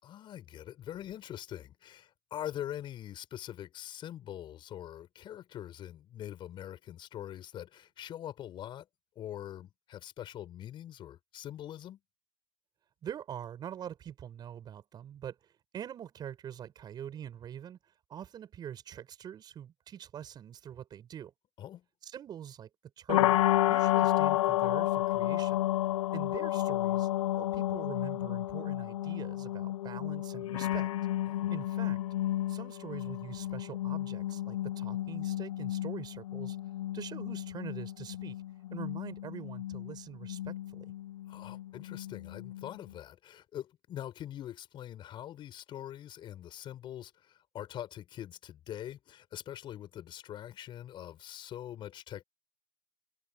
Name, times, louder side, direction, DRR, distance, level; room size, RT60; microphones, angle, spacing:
voice 1, 0.0-8.9 9.1-12.0 21.6-21.8 31.3-31.5 41.3-52.2, left 11 dB, 25° left, 6.4 m, -43 dB
voice 2, 13.0-17.8 18.1-21.3 22.0-22.7 23.0-23.4 23.7-25.7 26.1-27.1 27.4-30.9 31.5-32.0 32.5-36.6 36.9-38.4 38.7-40.9, right 9 dB, 25° right, 7.3 m, -44 dB
sound 1, 23.1-42.9, left 14 dB, 70° left, 0.8 m, -32 dB
supercardioid pair, 140°, 18 cm